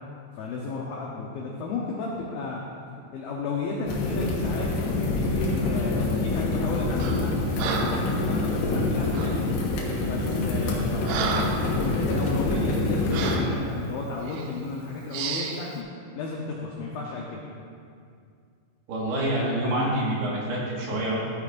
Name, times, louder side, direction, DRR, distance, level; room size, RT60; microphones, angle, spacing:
voice 1, 0.4-2.6 3.1-4.7 5.1-7.3 7.9-9.5 10.1-11.5 11.8-15.8 16.2-17.5, left 3 dB, 90° left, -3 dB, 2.0 m, -33 dB
sound 1, 3.9-13.4, left 2 dB, 70° left, 2.5 m, -26 dB
Breathing, 7.0-7.3 7.6-8.1 9.1-9.4 10.1-10.3 10.7-11.7 12.2-12.3 13.1-13.5 14.3-14.5 15.1-15.6, right 5 dB, 85° right, 3.0 m, -31 dB
voice 2, 18.9-21.2, right 1 dB, 65° right, -5 dB, 3.4 m, -26 dB
13.5 x 9.5 x 2.6 m, 2.3 s
omnidirectional pair, 5.4 m